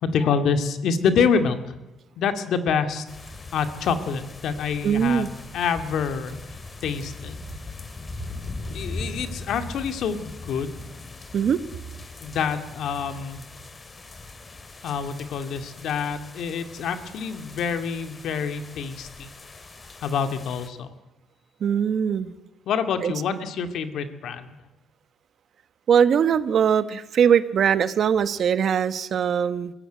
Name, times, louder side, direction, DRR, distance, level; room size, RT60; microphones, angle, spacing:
voice 1, 0.0-1.7 2.2-3.0 3.5-6.4 6.8-7.4 8.7-10.8 12.2-13.4 14.8-19.3 20.0-20.9 22.7-24.5, left 6 dB, 75° left, 8 dB, 2.2 m, -26 dB
sound 1, 3.1-20.7, left 3 dB, 30° left, 2.7 m, -40 dB
voice 2, 4.8-5.3 11.3-11.6 21.6-22.3 23.0-23.1 25.9-29.7, right 8 dB, 60° right, 13 dB, 1.2 m, -21 dB
22.5 x 16.0 x 9.3 m, 1.0 s
cardioid pair, 90°, 0 cm